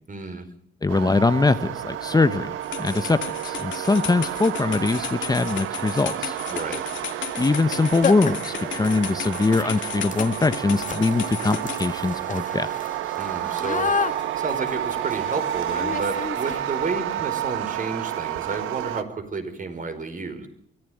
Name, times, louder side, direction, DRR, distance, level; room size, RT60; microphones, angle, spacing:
voice 1, 0.1-0.5 6.5-6.8 13.1-13.9 14.4-20.5, right 4 dB, 40° right, 7 dB, 5.0 m, -31 dB
voice 2, 0.8-2.5 2.8-6.4 7.3-12.7, left 3 dB, 20° left, 12 dB, 1.0 m, -22 dB
sound 1, 0.9-19.0, right 11 dB, 90° right, 1.3 m, -30 dB
sound 2, 2.6-11.9, left 9 dB, 70° left, 2.6 m, -34 dB
sound 3, 4.5-4.6 5.2-5.6 7.3-7.4 7.7-7.8 8.0-16.9, left 6 dB, 40° left, 1.9 m, -32 dB
23.5 x 15.5 x 9.4 m, 0.67 s
cardioid pair, 90°, 20 cm